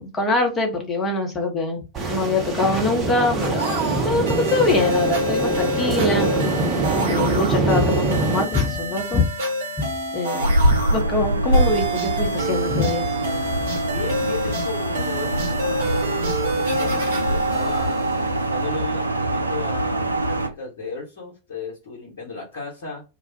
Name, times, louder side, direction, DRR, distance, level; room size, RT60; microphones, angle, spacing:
voice 1, 0.0-1.8 2.1-6.3 7.1-9.2 10.1-13.1 13.5-13.6, left 3 dB, 20° left, 0.8 m, -23 dB
sound 1, 1.9-8.5, right 2 dB, 25° right, 0.7 m, -24 dB
sound 2, 3.4-18.9, right 1 dB, 60° right, 0.9 m, -28 dB
sound 3, 10.4-20.5, right 1 dB, 80° right, 0.3 m, -23 dB
voice 2, 13.8-18.0 18.5-23.0, left 4 dB, 55° left, 1.0 m, -35 dB
2.2 x 2.1 x 2.7 m
figure-of-eight pair, 90°, 0 cm